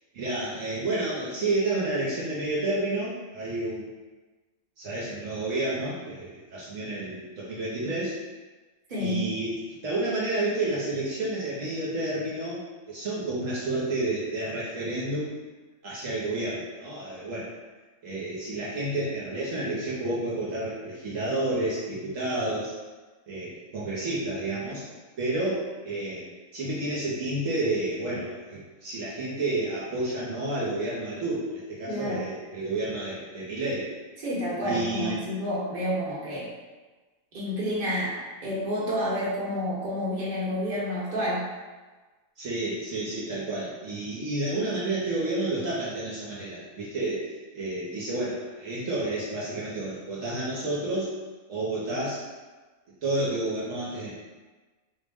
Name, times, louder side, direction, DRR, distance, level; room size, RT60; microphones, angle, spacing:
voice 1, 0.1-3.9 4.8-8.2 9.0-15.3 15.8-17.5 18.0-22.7 23.3-24.8 25.2-33.9 34.6-35.3 42.4-47.3 47.5-51.1 51.5-52.2 53.0-54.1, right 2 dB, 70° right, -7 dB, 1.1 m, -30 dB
voice 2, 8.9-9.2 31.9-32.2 34.2-36.5 37.3-38.2 38.4-41.4, equal, 40° right, -8 dB, 1.1 m, -29 dB
3.8 x 2.0 x 3.4 m, 1.3 s
omnidirectional pair, 1.5 m